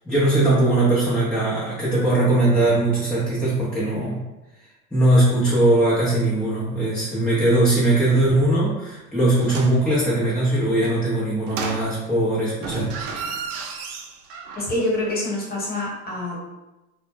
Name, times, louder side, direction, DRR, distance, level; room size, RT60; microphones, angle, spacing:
voice 1, 0.1-4.2 4.9-12.9, right 1 dB, ahead, -11 dB, 0.5 m, -20 dB
sound 1, 9.4-9.9 11.5-12.2 12.6-14.8 15.1-15.2, right 5 dB, 55° right, 0.5 m, -33 dB
voice 2, 14.5-16.4, left 1 dB, 20° left, -5 dB, 1.2 m, -26 dB
2.1 x 2.0 x 3.3 m, 1.0 s
hypercardioid pair, 95°, 44 cm